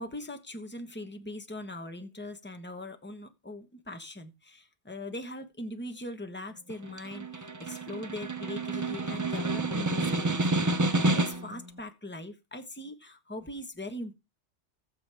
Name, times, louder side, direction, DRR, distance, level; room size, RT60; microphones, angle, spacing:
voice 1, 0.0-14.1, left 1 dB, 10° left, 1.2 m, -41 dB
Snare drum, 6.7-11.6, right 2 dB, 30° right, 0.4 m, -29 dB
19.5 x 7.4 x 3.5 m
omnidirectional pair, 1.2 m